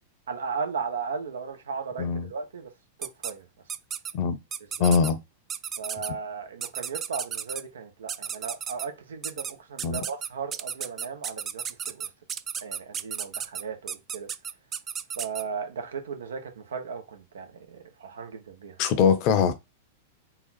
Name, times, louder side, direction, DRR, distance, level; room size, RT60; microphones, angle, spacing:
voice 1, 0.3-2.7 3.0-3.5 4.8-4.9 5.8-12.1 12.6-14.3 15.2-18.8, right 5 dB, 75° right, 0.9 m, -36 dB
voice 2, 2.0-2.3 4.1-4.4 4.8-5.2 9.8-10.0 18.8-19.5, left 6 dB, 45° left, 0.7 m, -22 dB
sound 1, 3.0-3.3 3.7-4.1 4.5-5.1 5.5-6.1 6.6-7.6 8.1-8.9 9.2-9.5 9.8-15.4, right 8 dB, 25° right, 0.3 m, -33 dB
3.9 x 2.4 x 4.1 m
figure-of-eight pair, 95°, 0 cm